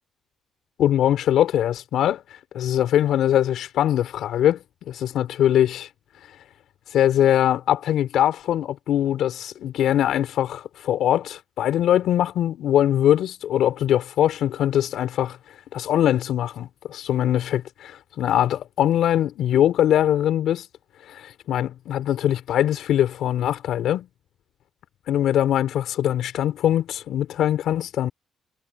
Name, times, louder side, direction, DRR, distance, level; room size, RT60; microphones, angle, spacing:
voice 1, 0.8-2.2 2.5-5.9 6.9-15.4 15.7-20.7 21.1-24.1 25.1-28.1, left 11 dB, 75° left, 4.1 m, -22 dB
cardioid pair, 90°, 0 cm